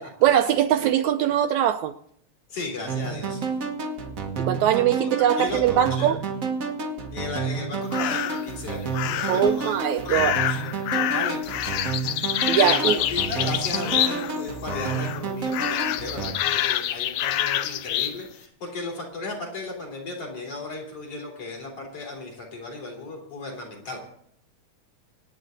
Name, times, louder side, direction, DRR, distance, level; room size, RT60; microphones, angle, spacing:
voice 1, 0.0-1.9 4.4-6.2 9.3-10.3 12.5-13.0, right 10 dB, 75° right, 8 dB, 1.9 m, -21 dB
voice 2, 2.5-3.5 4.9-5.1 5.4-6.2 7.1-9.8 10.0-11.8 12.2-12.3 12.6-24.0, left 3 dB, 45° left, 0 dB, 4.7 m, -35 dB
sound 1, 2.9-16.3, right 5 dB, 50° right, 0.9 m, -30 dB
sound 2, 7.9-8.5 8.9-9.5 10.1-14.4 14.7-15.2 15.5-18.2, left 12 dB, 80° left, 1.4 m, -27 dB
26.5 x 9.4 x 3.9 m, 0.65 s
omnidirectional pair, 3.6 m